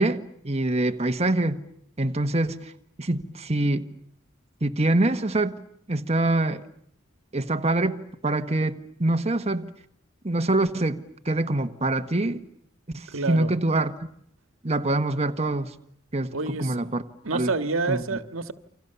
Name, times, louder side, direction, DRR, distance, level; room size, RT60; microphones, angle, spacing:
voice 1, 0.0-1.6 2.0-2.7 3.0-3.9 4.6-5.5 5.9-6.6 7.3-9.7 10.2-12.4 12.9-13.9 14.6-15.7 16.1-17.0 17.3-17.5 17.9-18.2, right 2 dB, 30° right, 1.4 m, -25 dB
voice 2, 13.1-13.5 16.3-16.7 17.2-18.5, right 3 dB, 90° right, 1.7 m, -28 dB
29.5 x 26.0 x 6.9 m
head